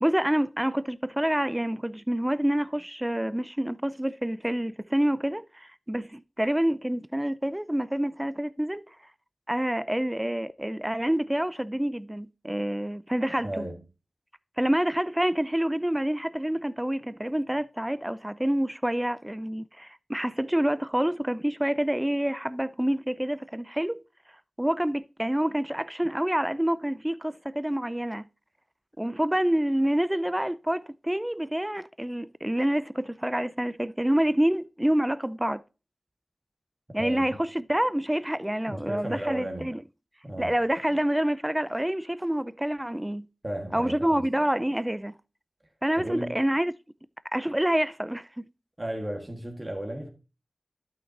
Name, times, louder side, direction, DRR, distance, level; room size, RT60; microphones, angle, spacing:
voice 1, 0.0-8.8 9.5-13.6 14.6-24.0 24.6-28.3 29.0-35.6 36.9-39.8 40.4-43.3 43.7-45.1 45.8-46.7 47.3-48.3, right 1 dB, 10° right, 0.4 m, -27 dB
voice 2, 13.4-13.8 37.0-37.4 38.7-39.7 40.2-40.6 43.4-44.3 46.0-46.4 48.8-50.1, right 1 dB, 30° right, 1.6 m, -34 dB
12.0 x 5.8 x 2.8 m
wide cardioid pair, 50°, 0 cm